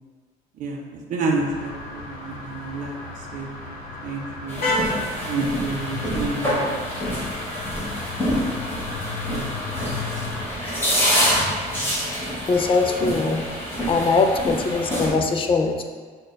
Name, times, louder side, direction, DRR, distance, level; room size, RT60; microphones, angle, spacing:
voice 1, 0.6-3.0 3.3-3.5 4.0-4.6 5.2-7.0, right 3 dB, 50° right, -1 dB, 0.5 m, -29 dB
sound 1, 1.4-10.5, left 2 dB, 55° left, 1.1 m, -32 dB
sound 2, 4.5-15.1, equal, 15° left, 1.0 m, -26 dB
voice 2, 12.5-13.4 13.9-15.8, left 4 dB, 30° left, 4 dB, 0.4 m, -21 dB
6.1 x 2.2 x 2.2 m, 1.5 s
cardioid pair, 110°, 17 cm